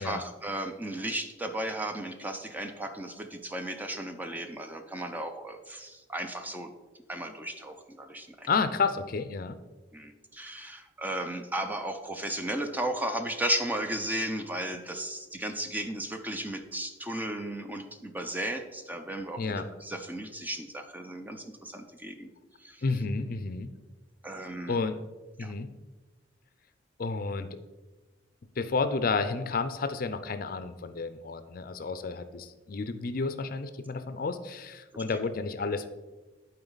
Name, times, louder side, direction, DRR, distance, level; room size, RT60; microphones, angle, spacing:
voice 1, 0.0-6.7 7.1-8.5 9.9-22.3 22.6-22.8 24.2-24.8 25.4-25.5 34.9-35.0, right 1 dB, 10° right, 6 dB, 0.5 m, -35 dB
voice 2, 8.5-9.6 19.4-19.6 22.8-23.7 24.7-25.0 25.4-25.7 27.0-27.5 28.6-35.9, left 4 dB, 50° left, 10 dB, 0.5 m, -31 dB
11.0 x 4.5 x 4.0 m, 1.2 s
head